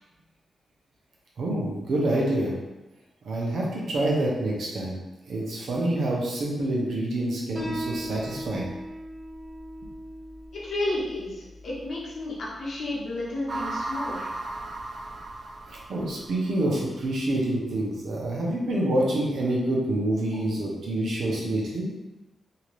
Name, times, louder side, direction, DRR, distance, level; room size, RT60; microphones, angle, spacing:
voice 1, 1.4-2.5 3.2-5.0 5.3-8.7 15.7-21.9, right 1 dB, 75° right, -4 dB, 0.7 m, -27 dB
Piano, 7.6-14.6, equal, 20° right, 0.9 m, -40 dB
voice 2, 10.6-14.3, left 2 dB, 65° left, -7 dB, 1.1 m, -32 dB
sound 1, 13.5-16.8, right 2 dB, 40° right, 0.4 m, -35 dB
2.8 x 2.5 x 3.1 m, 1.0 s
wide cardioid pair, 120°, 0 cm